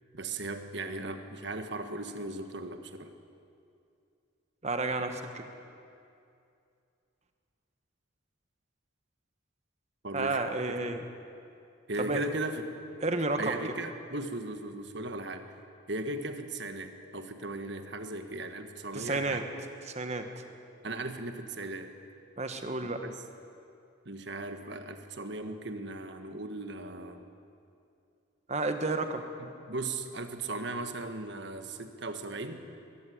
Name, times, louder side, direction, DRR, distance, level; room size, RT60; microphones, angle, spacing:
voice 1, 0.1-3.1 10.0-10.4 10.7-10.8 11.9-12.6 13.4-15.4 15.9-19.5 20.8-21.9 22.8-23.2 24.0-27.2 29.4-32.6, right 2 dB, 60° right, 7 dB, 1.6 m, -37 dB
voice 2, 4.6-5.5 10.1-11.0 12.0-12.2 13.0-13.6 18.9-19.4 19.9-20.3 22.4-23.0 28.5-29.2, right 2 dB, 35° right, 7 dB, 1.5 m, -31 dB
21.5 x 15.0 x 9.5 m, 2.5 s
head